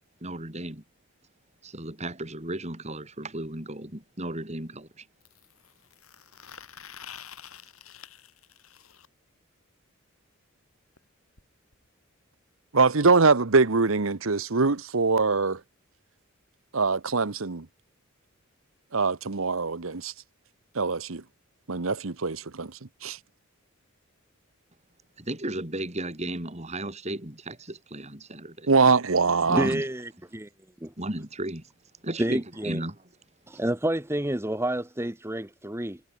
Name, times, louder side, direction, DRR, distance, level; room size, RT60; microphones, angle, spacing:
voice 1, 0.2-0.8 1.6-5.1 25.2-28.7 29.4-29.9 31.0-31.7 32.0-33.0, right 1 dB, 30° right, 4.3 m, -34 dB
sound 1, 3.2-3.3 5.2-9.1 11.0-11.1 11.4-11.5 11.7-11.9 12.8-12.9, left 9 dB, 90° left, 7.1 m, -48 dB
voice 2, 12.7-15.6 16.7-17.7 18.9-20.1 20.7-21.2 21.7-23.2 28.7-29.7, right 4 dB, 70° right, 1.1 m, -23 dB
voice 3, 29.5-30.5 30.8-30.9 32.2-32.8 33.5-36.0, right 1 dB, 10° right, 1.3 m, -29 dB
head